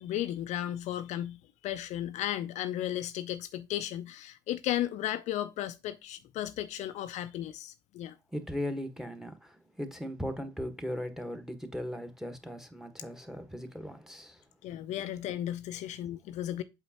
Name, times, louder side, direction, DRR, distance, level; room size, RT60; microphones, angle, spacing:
voice 1, 0.0-8.2 14.6-16.6, left 12 dB, 60° left, 0.5 m, -35 dB
voice 2, 8.3-14.4, equal, 5° right, 1.4 m, -38 dB
7.7 x 4.5 x 2.9 m
figure-of-eight pair, 50°, 14 cm